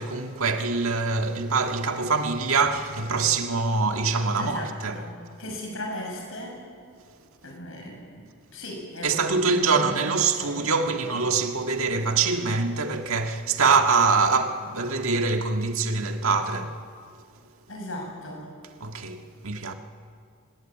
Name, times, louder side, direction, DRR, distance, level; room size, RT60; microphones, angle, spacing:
voice 1, 0.0-5.0 9.0-16.8 18.8-19.7, right 4 dB, 75° right, 1.8 m, -24 dB
voice 2, 4.4-6.6 7.4-11.2 17.7-18.5, left 1 dB, 70° left, 7.0 m, -37 dB
25.0 x 20.5 x 9.1 m
head